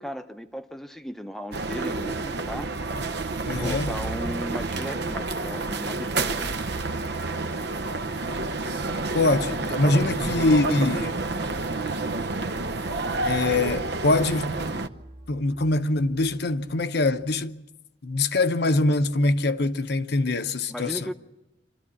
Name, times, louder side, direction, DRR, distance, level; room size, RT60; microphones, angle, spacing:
voice 1, 0.0-2.7 3.5-6.6 20.7-21.1, equal, ahead, 0.8 m, -36 dB
sound 1, 1.5-14.9, right 3 dB, 65° right, 0.8 m, -29 dB
voice 2, 3.5-3.9 9.1-11.2 13.2-14.5 15.3-17.6 18.0-21.1, left 2 dB, 65° left, 0.9 m, -23 dB
sound 2, 13.5-17.4, right 1 dB, 40° right, 1.9 m, -50 dB
25.5 x 13.5 x 9.7 m
head